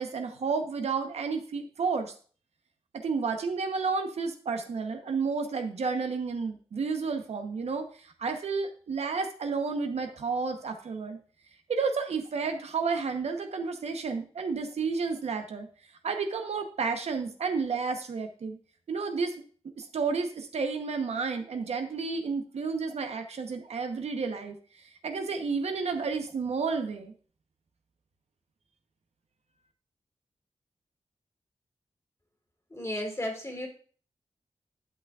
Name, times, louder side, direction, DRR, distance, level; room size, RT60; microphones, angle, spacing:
voice 1, 0.0-2.1 2.9-11.2 11.7-15.7 16.0-18.6 18.9-19.4 19.8-24.5 25.0-27.1, right 5 dB, 80° right, 6 dB, 0.8 m, -31 dB
voice 2, 32.7-33.7, left 1 dB, 25° left, 1 dB, 2.1 m, -34 dB
10.5 x 5.9 x 2.3 m, 0.42 s
wide cardioid pair, 85°, 11 cm